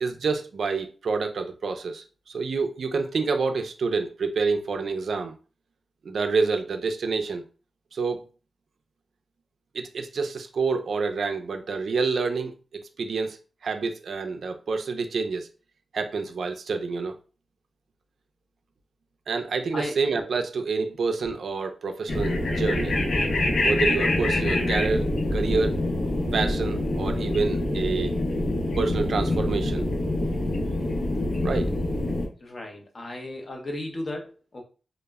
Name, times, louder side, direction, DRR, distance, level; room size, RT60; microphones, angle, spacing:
voice 1, 0.0-5.3 6.0-7.4 7.9-8.2 9.7-13.4 13.6-15.5 15.9-17.1 19.3-23.0 23.6-25.8 26.3-28.1 28.8-29.9 31.4-31.7, right 4 dB, 75° right, 0.3 m, -28 dB
sound 1, 22.1-32.3, left 1 dB, 75° left, 0.6 m, -25 dB
voice 2, 32.4-34.6, left 1 dB, 40° left, 0.7 m, -35 dB
2.1 x 2.0 x 3.3 m
wide cardioid pair, 130°, 0 cm